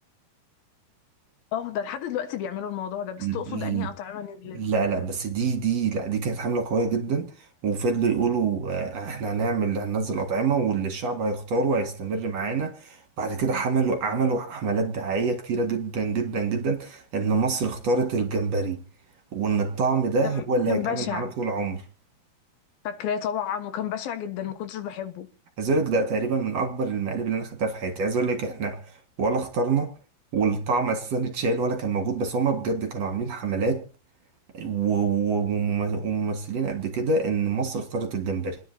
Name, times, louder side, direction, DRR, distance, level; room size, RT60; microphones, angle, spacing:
voice 1, 1.5-4.6 20.2-21.3 22.8-25.3, left 9 dB, 70° left, 3.0 m, -31 dB
voice 2, 3.2-3.9 4.5-18.8 19.3-21.9 25.6-28.8 29.2-29.9 30.3-33.8 34.5-38.6, right 4 dB, 50° right, 2.5 m, -26 dB
29.0 x 10.5 x 2.8 m
omnidirectional pair, 4.6 m